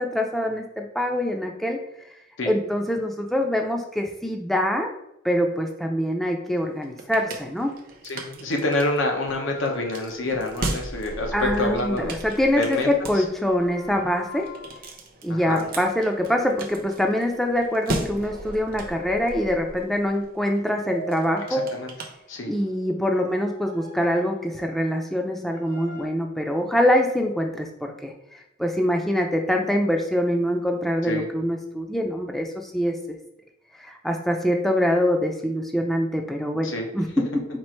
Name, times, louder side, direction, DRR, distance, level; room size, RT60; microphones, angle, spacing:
voice 1, 0.0-1.8 2.4-4.9 5.2-7.7 11.3-14.5 15.2-21.7 22.5-33.0 33.8-37.4, equal, ahead, 2 dB, 0.4 m, -24 dB
sound 1, 6.6-22.8, right 2 dB, 50° right, 0.6 m, -37 dB
sound 2, 7.2-8.2 8.7-10.7 11.3-12.2 13.5-15.0 16.1-17.8 18.4-20.1 20.7-22.3 23.1-25.0 25.5-26.1, equal, 65° left, 1.6 m, -42 dB
voice 2, 8.0-12.1 12.6-12.9 13.2-13.3 15.3-15.7 21.5-21.9 22.3-22.5 31.0-31.3 36.6-36.9, left 2 dB, 80° left, 2 dB, 0.8 m, -27 dB
4.4 x 2.5 x 4.3 m, 0.83 s
head